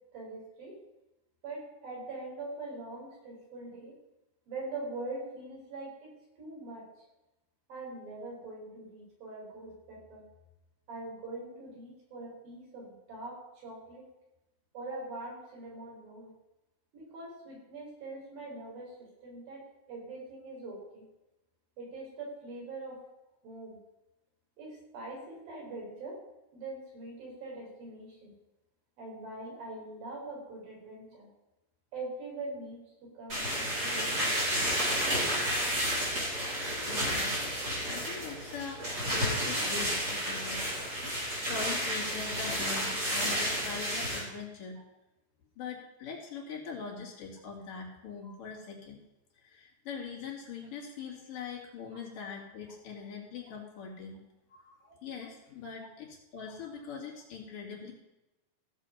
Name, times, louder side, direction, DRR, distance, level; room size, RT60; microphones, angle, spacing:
voice 1, 0.1-0.8 1.4-4.0 4.5-6.8 7.7-10.2 10.9-14.1 14.7-16.3 16.9-19.0 19.2-19.6 19.9-21.1 21.8-23.0 23.4-23.8 24.6-26.2 26.5-28.3 29.0-31.3 31.9-32.8 33.1-34.5 42.8-42.9 48.2-48.3, right 2 dB, 65° right, -2 dB, 5.7 m, -43 dB
sound 1, 33.3-44.2, equal, 25° right, 4.5 m, -31 dB
voice 2, 36.9-40.6 41.0-44.8 45.6-49.0 49.3-54.2 54.5-57.9, left 5 dB, 60° left, -3 dB, 3.8 m, -42 dB
16.0 x 7.4 x 5.6 m, 0.97 s
omnidirectional pair, 4.4 m